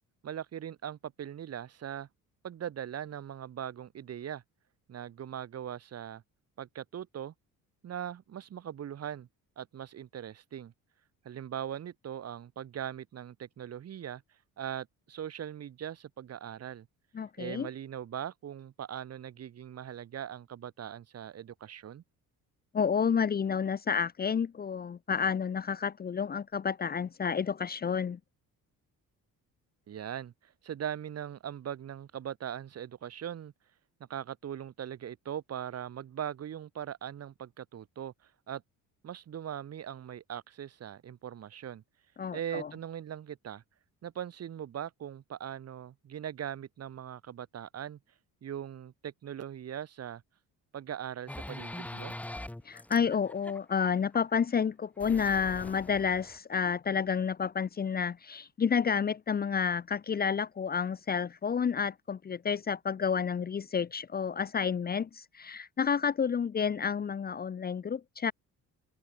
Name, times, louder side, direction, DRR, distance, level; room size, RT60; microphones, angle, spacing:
voice 1, 0.2-2.1 2.4-4.4 4.9-6.2 6.6-7.3 7.8-9.3 9.6-10.7 11.2-14.2 14.6-16.9 17.4-22.0 29.9-33.5 34.1-38.6 39.0-41.8 42.3-43.6 44.0-48.0 48.4-50.2 50.7-52.1, right 9 dB, 45° right, 7.1 m, -40 dB
voice 2, 17.1-17.7 22.7-28.2 42.2-42.7 52.6-68.3, left 6 dB, 25° left, 1.1 m, -30 dB
sound 1, 51.3-54.4 55.0-56.4, left 1 dB, 5° left, 1.3 m, -43 dB
open air
cardioid pair, 165°, 34 cm